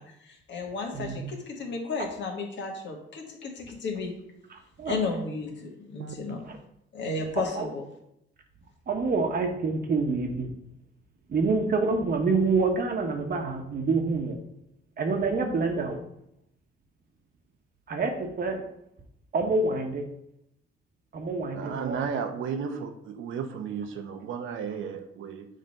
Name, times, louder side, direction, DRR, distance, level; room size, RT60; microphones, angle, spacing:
voice 1, 0.0-4.1 4.8-6.4 6.9-7.8, left 3 dB, 65° left, 1 dB, 1.5 m, -33 dB
voice 2, 0.9-1.3 4.8-5.0 6.5-6.6 7.4-7.7 8.9-10.5 11.3-14.4 15.0-16.0 17.9-18.6 19.3-20.0 21.1-22.0, right 4 dB, 50° right, 4 dB, 1.1 m, -27 dB
voice 3, 21.5-25.5, right 6 dB, 80° right, 6 dB, 0.8 m, -34 dB
6.5 x 3.3 x 5.3 m, 0.75 s
cardioid pair, 90°, 20 cm